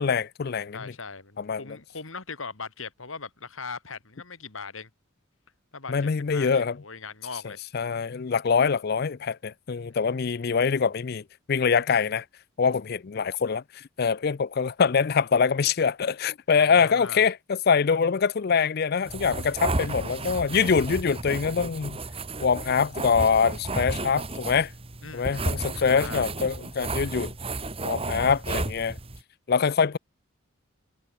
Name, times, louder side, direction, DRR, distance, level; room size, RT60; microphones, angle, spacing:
voice 1, 0.0-0.8 1.4-1.6 5.9-6.8 7.7-12.2 12.6-22.0 22.4-24.7 25.1-27.3 27.8-29.0 29.5-30.0, left 6 dB, 45° left, 0.4 m, -24 dB
voice 2, 0.7-4.9 5.7-7.6 16.6-17.3 25.0-26.2, left 4 dB, 70° left, 2.4 m, -40 dB
sound 1, 19.1-29.2, right 2 dB, 25° right, 2.0 m, -33 dB
head